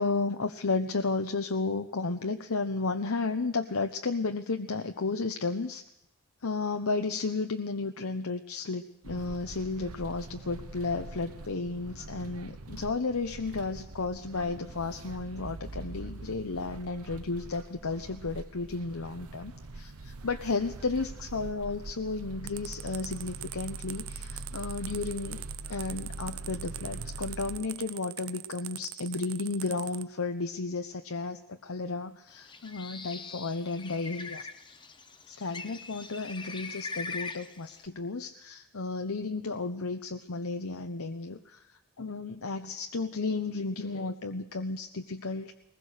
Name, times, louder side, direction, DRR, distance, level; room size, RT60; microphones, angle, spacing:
voice 1, 0.0-5.8 6.4-25.4 25.7-34.5 35.3-41.6 42.0-45.5, left 3 dB, 75° left, 6 dB, 0.9 m, -33 dB
sound 1, 9.0-27.6, right 2 dB, 85° right, 1.1 m, -43 dB
sound 2, 22.5-30.0, right 15 dB, 70° right, 0.7 m, -41 dB
Bird, 32.3-37.9, left 4 dB, 20° left, 1.1 m, -42 dB
22.0 x 20.0 x 6.6 m, 0.84 s
head